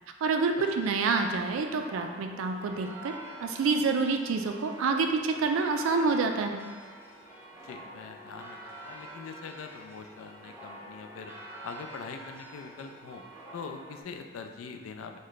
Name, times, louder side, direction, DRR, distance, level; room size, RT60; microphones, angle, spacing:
voice 1, 0.2-3.1 3.4-6.6, right 4 dB, 85° right, 5 dB, 0.3 m, -27 dB
sound 1, 0.6-14.0, right 1 dB, 10° right, 0.4 m, -46 dB
voice 2, 7.6-11.3 11.6-13.2 13.5-15.2, left 5 dB, 90° left, 6 dB, 0.3 m, -43 dB
3.0 x 2.2 x 3.9 m, 1.5 s
head